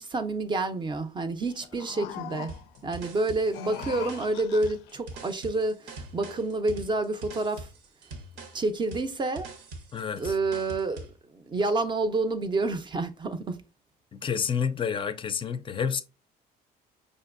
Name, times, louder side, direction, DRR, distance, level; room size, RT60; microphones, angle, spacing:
voice 1, 0.0-2.5 2.8-7.7 8.5-9.5 10.2-11.1 11.3-13.6, right 2 dB, 30° right, 0.5 m, -28 dB
sound 1, 1.5-2.8 3.4-5.0, left 10 dB, 90° left, 0.4 m, -41 dB
sound 2, 2.5-11.2, right 2 dB, 85° right, 0.9 m, -43 dB
voice 2, 9.9-10.4 14.1-16.0, left 7 dB, 30° left, 0.4 m, -29 dB
5.1 x 2.6 x 2.5 m
cardioid pair, 110°, 17 cm